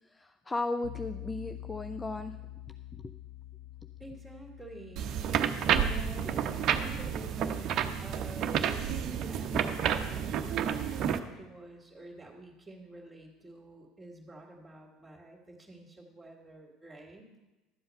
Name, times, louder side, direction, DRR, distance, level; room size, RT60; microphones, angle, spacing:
voice 1, 0.1-2.3 3.0-3.1 9.5-9.6, left 2 dB, 15° left, 9 dB, 0.4 m, -35 dB
sound 1, 0.8-9.7, left 13 dB, 80° left, 1.0 m, -48 dB
voice 2, 4.0-5.1 5.7-17.3, right 2 dB, 10° right, -4 dB, 2.1 m, -49 dB
sound 2, 5.0-11.2, right 8 dB, 50° right, 0.7 m, -30 dB
12.0 x 7.9 x 5.3 m, 1.1 s
hypercardioid pair, 70°, 0 cm